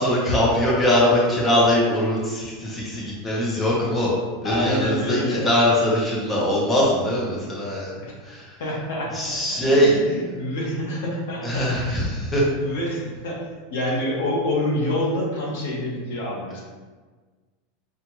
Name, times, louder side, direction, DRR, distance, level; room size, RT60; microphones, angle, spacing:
voice 1, 0.0-4.1 4.4-7.9 8.3-8.4 9.1-9.9 11.4-12.4, left 1 dB, 10° left, -5 dB, 0.8 m, -21 dB
voice 2, 4.4-5.5 8.0-8.2 8.6-16.6, left 1 dB, 75° left, -3 dB, 1.1 m, -27 dB
5.7 x 2.5 x 3.0 m, 1.4 s
supercardioid pair, 165°, 0 cm